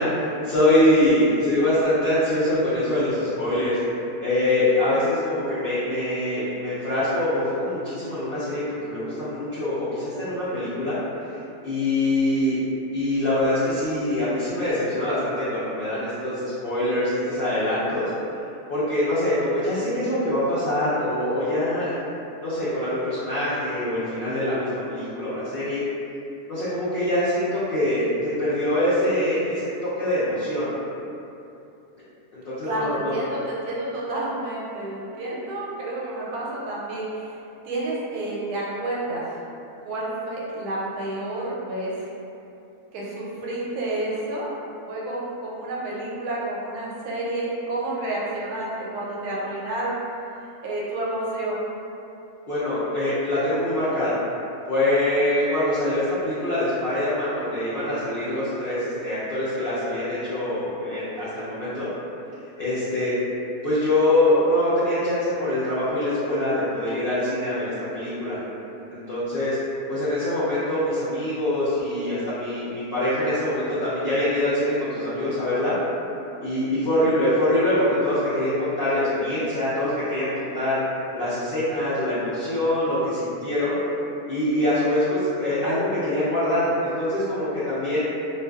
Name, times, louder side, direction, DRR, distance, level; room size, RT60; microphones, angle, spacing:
voice 1, 0.0-3.8 4.2-11.0 11.6-12.6 12.9-18.1 18.7-22.0 22.4-25.8 26.5-30.7 32.3-33.2 52.5-54.1 54.7-61.9 62.6-63.1 63.6-68.4 68.9-69.6 69.9-75.7 76.4-80.8 81.1-83.8 84.3-88.1, left 1 dB, 75° left, -12 dB, 0.5 m, -24 dB
voice 2, 32.6-37.1 37.6-39.2 39.8-41.9 42.9-44.6 44.9-50.0 50.6-51.7, right 1 dB, 85° right, -5 dB, 1.1 m, -30 dB
2.5 x 2.3 x 2.2 m, 2.7 s
omnidirectional pair, 1.6 m